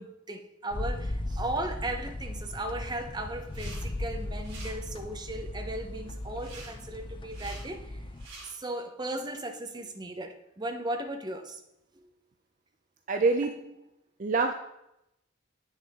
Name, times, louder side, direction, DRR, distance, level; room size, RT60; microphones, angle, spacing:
voice 1, 0.0-8.0 8.4-11.6, right 1 dB, 20° right, 5 dB, 0.8 m, -36 dB
sound 1, 0.7-8.3, left 1 dB, 25° left, 0.4 m, -37 dB
sound 2, 3.4-3.8 4.1-4.7 6.4-6.7 7.2-7.6 8.1-8.5, right 3 dB, 80° right, 3.2 m, -47 dB
voice 2, 13.1-13.8 14.2-14.5, right 3 dB, 40° right, 5 dB, 0.4 m, -26 dB
8.5 x 6.4 x 3.6 m, 0.85 s
head